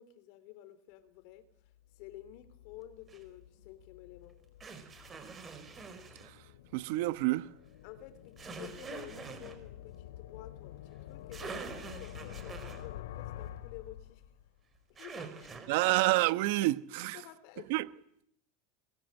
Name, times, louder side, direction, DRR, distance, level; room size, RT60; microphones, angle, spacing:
voice 1, 0.0-1.5 2.0-4.4 7.8-14.2 14.9-16.1 16.6-16.7 17.1-17.7, left 13 dB, 55° left, 3.4 m, -51 dB
sound 1, 1.7-14.6, left 12 dB, 90° left, 2.5 m, -49 dB
sound 2, 3.1-3.2 4.6-6.3 8.4-9.6 11.0-11.1 11.3-12.9 15.0-16.1, right 5 dB, 20° right, 4.6 m, -45 dB
voice 2, 6.7-7.5 15.7-17.2 17.7-17.8, right 19 dB, 65° right, 1.1 m, -28 dB
28.0 x 21.5 x 9.0 m
supercardioid pair, 145°, 0 cm